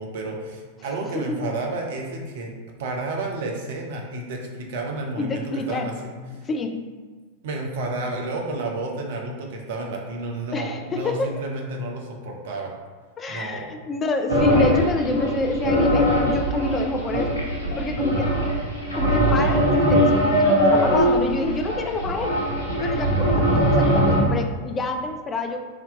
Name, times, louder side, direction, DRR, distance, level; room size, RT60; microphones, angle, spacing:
voice 1, 0.0-2.5 2.8-6.4 7.4-12.7 13.3-13.7, right 2 dB, 55° right, 1 dB, 0.7 m, -31 dB
voice 2, 1.1-1.5 5.2-5.9 6.4-6.9 10.5-11.3 13.2-17.4 17.8-18.3 18.9-25.6, left 3 dB, 20° left, 5 dB, 0.4 m, -28 dB
sound 1, 14.3-24.2, equal, 80° left, 0.9 m, -21 dB
3.5 x 2.9 x 3.6 m, 1.4 s
figure-of-eight pair, 90°, 0 cm